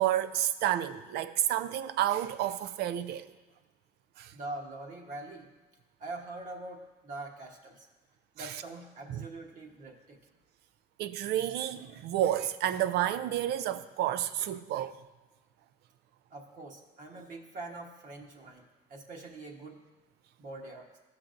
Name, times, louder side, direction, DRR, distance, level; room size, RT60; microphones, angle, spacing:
voice 1, 0.0-3.3 4.2-4.3 8.4-8.5 9.1-9.3 11.0-14.9, right 12 dB, 75° right, 0.4 m, -30 dB
voice 2, 4.3-5.5 6.0-7.9 8.3-10.2 16.3-19.8 20.4-21.0, right 2 dB, 50° right, 1.2 m, -44 dB
13.5 x 5.8 x 2.5 m
cardioid pair, 110°, 17 cm